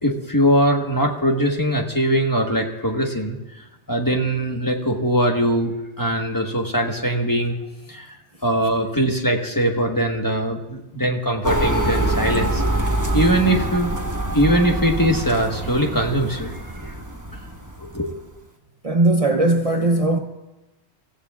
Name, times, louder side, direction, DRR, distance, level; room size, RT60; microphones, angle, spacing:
voice 1, 0.0-3.4 3.9-7.6 7.9-8.2 8.4-12.6 13.1-13.9 14.3-17.0 17.9-18.2, equal, 20° left, 1.3 m, -21 dB
sound 1, 11.4-17.9, right 1 dB, 15° right, 1.2 m, -25 dB
voice 2, 18.8-20.2, right 2 dB, 35° right, 0.8 m, -18 dB
29.0 x 16.0 x 2.4 m
omnidirectional pair, 1.1 m